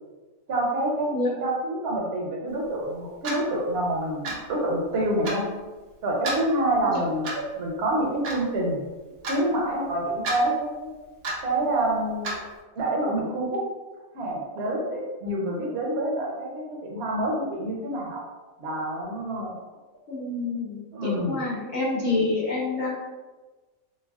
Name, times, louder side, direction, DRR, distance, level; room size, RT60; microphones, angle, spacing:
voice 1, 0.5-1.1 1.4-5.5 6.0-8.8 9.3-10.9 11.4-12.4 12.8-13.6 14.1-18.2 18.6-19.5 20.9-21.4, right 1 dB, 55° right, -2 dB, 0.9 m, -27 dB
Clock, 3.2-3.4 4.2-4.5 5.2-5.4 6.2-6.4 7.2-7.5 8.2-8.4 9.2-9.4 10.2-10.4 11.2-11.4 12.2-12.4, right 2 dB, 85° right, 1.2 m, -30 dB
voice 2, 20.1-22.9, left 3 dB, 40° left, -7 dB, 0.8 m, -27 dB
3.2 x 3.2 x 2.4 m, 1.2 s
omnidirectional pair, 1.5 m